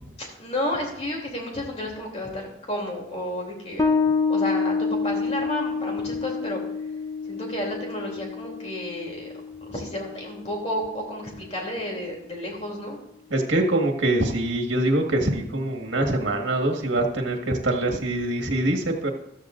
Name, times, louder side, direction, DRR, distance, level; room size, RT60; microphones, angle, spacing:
voice 1, 0.2-3.9 4.3-6.6 7.2-9.3 9.6-13.0, left 1 dB, 35° left, -1 dB, 3.0 m, -31 dB
Bass guitar, 3.8-10.9, left 4 dB, 20° left, 0.9 m, -28 dB
voice 2, 13.3-19.1, right 1 dB, 85° right, 3 dB, 1.7 m, -24 dB
14.0 x 13.0 x 2.6 m, 0.81 s
head